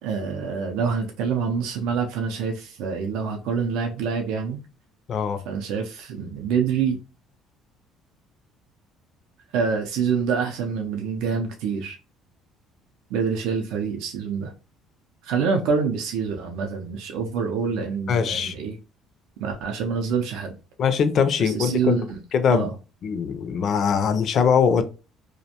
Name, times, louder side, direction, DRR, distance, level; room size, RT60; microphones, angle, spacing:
voice 1, 0.0-4.6 5.5-7.0 9.5-12.0 13.1-14.5 15.2-18.8 19.4-20.5 21.4-22.2 22.5-22.7, right 6 dB, 80° right, 0.4 m, -26 dB
voice 2, 5.1-5.4 18.1-18.5 20.8-22.0 22.3-22.7 23.0-24.8, left 6 dB, 40° left, 0.3 m, -21 dB
2.5 x 2.1 x 2.7 m
cardioid pair, 155°, 0 cm